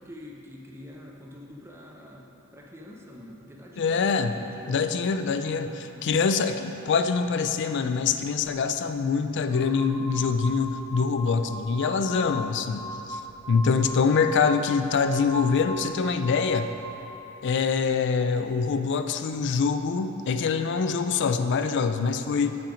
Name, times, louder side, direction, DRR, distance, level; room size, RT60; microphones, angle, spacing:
voice 1, 0.0-2.3 2.5-4.7 5.5-6.1, left 1 dB, 10° right, -1 dB, 0.6 m, -45 dB
voice 2, 3.8-4.4 4.7-13.2 13.5-16.7 17.4-22.6, left 5 dB, 55° left, 9 dB, 0.3 m, -25 dB
sound 1, 9.4-17.1, left 1 dB, 5° left, 1.1 m, -39 dB
7.6 x 5.9 x 5.0 m, 3.0 s
head